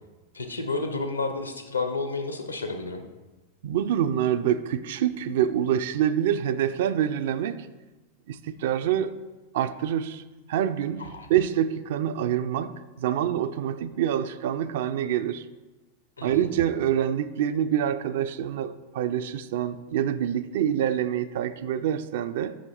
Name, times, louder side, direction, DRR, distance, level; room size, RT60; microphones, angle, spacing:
voice 1, 0.3-3.0 11.0-11.3 16.2-16.5, left 3 dB, 80° left, 0.8 m, -31 dB
voice 2, 3.6-7.7 8.3-9.2 9.5-10.2 10.5-15.4 16.2-22.6, right 10 dB, 55° right, 0.4 m, -26 dB
6.5 x 5.7 x 4.5 m
figure-of-eight pair, 90°, 0 cm